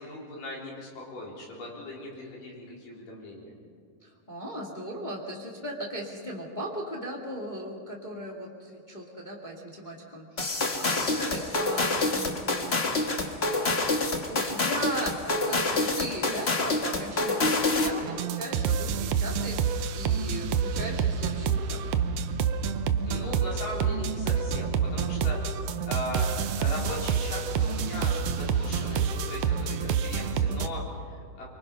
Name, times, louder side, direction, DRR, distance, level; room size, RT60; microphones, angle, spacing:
voice 1, 0.0-3.5 23.0-25.4 25.8-31.4, left 1 dB, 75° left, -3 dB, 5.8 m, -38 dB
voice 2, 4.0-12.8 13.5-13.9 14.3-21.8, right 1 dB, 15° left, -1 dB, 2.0 m, -38 dB
sound 1, 10.4-18.0, left 2 dB, 55° left, 0.6 m, -27 dB
sound 2, 18.0-30.7, right 6 dB, 80° right, 1.4 m, -28 dB
25.5 x 24.5 x 5.6 m, 2.2 s
omnidirectional pair, 3.9 m